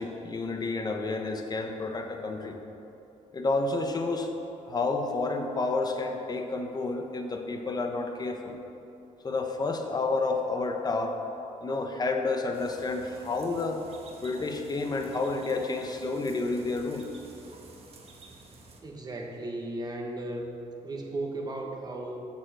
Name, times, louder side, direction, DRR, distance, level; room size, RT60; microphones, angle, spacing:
voice 1, 0.0-2.6 3.3-4.3 4.7-8.6 9.2-11.2 11.6-13.8 14.2-17.1, left 3 dB, 30° left, 4 dB, 0.9 m, -30 dB
sound 1, 12.5-18.8, right 3 dB, 45° right, 1.3 m, -51 dB
voice 2, 18.8-20.5 20.8-22.3, right 2 dB, 30° right, 0 dB, 1.3 m, -35 dB
7.1 x 6.6 x 7.7 m, 2.9 s
cardioid pair, 125°, 14 cm